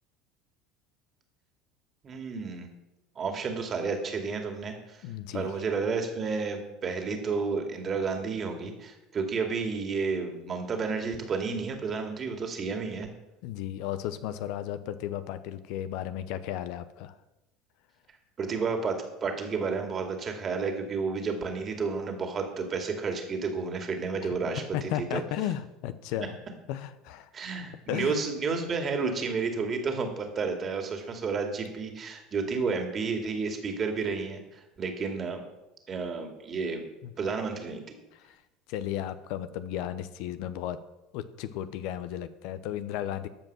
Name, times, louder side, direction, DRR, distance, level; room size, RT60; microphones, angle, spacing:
voice 1, 2.0-2.7 3.2-5.0 5.3-13.1 18.4-25.2 27.3-35.4 35.9-36.8 37.2-37.8, right 4 dB, 35° right, 4 dB, 2.3 m, -31 dB
voice 2, 5.0-5.5 13.4-17.1 24.7-26.4 26.7-27.3 27.9-28.2 37.0-37.1 38.1-38.4 38.7-40.8 41.1-43.3, left 11 dB, 65° left, 12 dB, 0.7 m, -34 dB
13.5 x 5.5 x 6.1 m, 0.97 s
hypercardioid pair, 85°, 0 cm